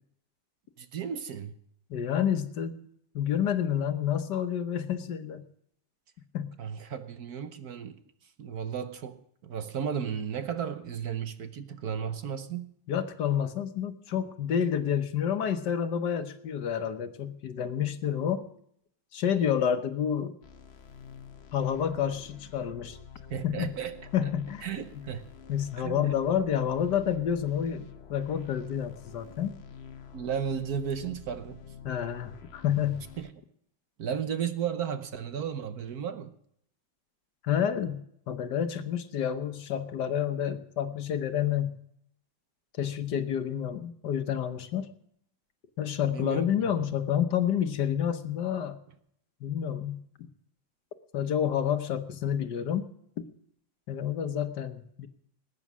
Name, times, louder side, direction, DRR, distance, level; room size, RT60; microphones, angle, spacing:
voice 1, 0.8-1.5 6.6-12.7 23.3-24.0 24.2-24.3 24.6-25.3 25.8-26.2 30.1-31.6 33.2-33.3 34.0-36.3 46.0-46.9, right 8 dB, 60° right, 1.3 m, -34 dB
voice 2, 1.9-2.8 3.1-5.4 6.3-6.5 12.9-18.4 19.1-20.3 21.5-23.0 23.4-23.7 24.1-24.6 25.5-29.6 31.8-33.0 37.4-38.0 38.3-41.8 42.8-44.9 45.8-48.8 49.4-50.3 51.1-52.9 53.2-53.3 53.9-55.1, left 9 dB, 65° left, 1.6 m, -29 dB
sound 1, 20.4-33.3, left 7 dB, 40° left, 1.0 m, -49 dB
19.5 x 9.5 x 6.1 m
omnidirectional pair, 2.0 m